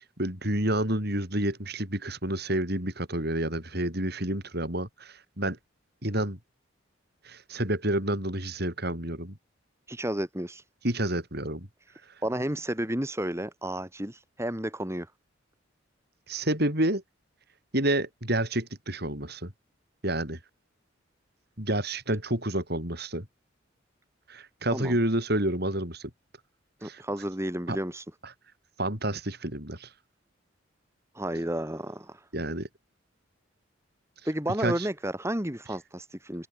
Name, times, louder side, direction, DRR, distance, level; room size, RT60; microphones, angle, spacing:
voice 1, 0.2-5.6 6.0-6.4 7.2-9.4 10.8-11.7 16.3-17.0 17.7-19.5 20.0-20.4 21.6-23.3 24.3-26.1 26.8-27.0 27.7-27.8 28.8-29.9 32.3-32.7 34.6-34.9, right 1 dB, 50° right, 7.9 m, -29 dB
voice 2, 9.9-10.6 11.9-15.1 24.7-25.0 26.8-28.1 31.1-32.3 34.2-36.5, right 1 dB, 15° right, 2.6 m, -32 dB
open air
head